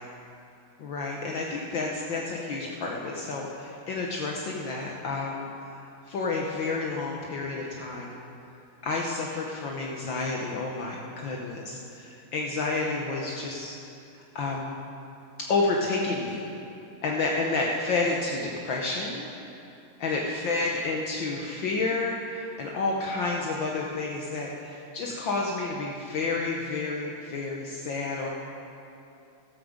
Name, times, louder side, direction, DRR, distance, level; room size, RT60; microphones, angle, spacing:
voice 1, 0.8-5.5 6.1-8.2 8.8-13.8 14.1-14.7 15.5-16.5 17.0-19.3 20.0-28.3, left 3 dB, 65° left, -1 dB, 1.7 m, -30 dB
14.5 x 13.5 x 5.1 m, 2.7 s
omnidirectional pair, 2.3 m